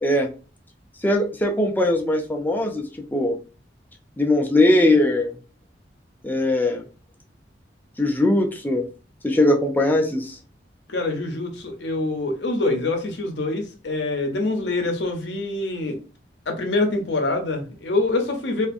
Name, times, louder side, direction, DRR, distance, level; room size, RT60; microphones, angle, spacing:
voice 1, 1.0-3.4 4.2-5.4 6.2-6.8 8.0-8.9 9.2-10.4, left 1 dB, 10° left, 0.4 m, -20 dB
voice 2, 10.9-16.0 16.5-18.7, left 2 dB, 80° left, 0.6 m, -25 dB
2.5 x 2.4 x 2.6 m
head